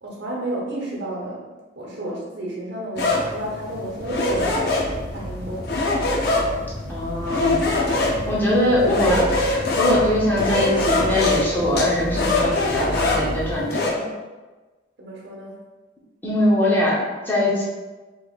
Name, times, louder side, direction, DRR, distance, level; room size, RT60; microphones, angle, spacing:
voice 1, 0.0-1.4 1.7-4.8 5.1-5.8 15.0-15.6, right 1 dB, 60° right, -3 dB, 1.0 m, -31 dB
sound 1, 3.0-13.9, left 2 dB, 55° left, 0.6 m, -24 dB
sound 2, 4.0-13.6, right 1 dB, 85° right, 0.7 m, -33 dB
voice 2, 6.9-7.6 8.3-14.0 16.2-17.6, left 1 dB, 10° left, -7 dB, 0.8 m, -22 dB
4.7 x 3.0 x 2.4 m, 1.2 s
head